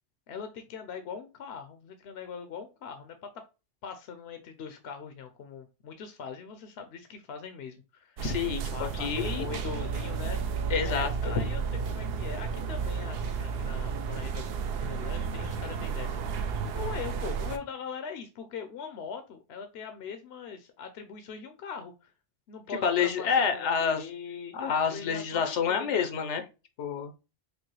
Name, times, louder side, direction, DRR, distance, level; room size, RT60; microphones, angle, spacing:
voice 1, 0.3-3.4 3.8-8.2 8.7-22.1 22.5-23.3 23.5-26.1, left 6 dB, 70° left, 7 dB, 0.8 m, -41 dB
voice 2, 8.2-9.5 10.7-11.3 22.7-24.0 24.5-26.5 26.8-27.1, left 6 dB, 85° left, 6 dB, 1.1 m, -28 dB
sound 1, 8.2-17.6, right 5 dB, 65° right, 0.7 m, -32 dB
5.2 x 2.1 x 3.0 m, 0.29 s
omnidirectional pair, 1.2 m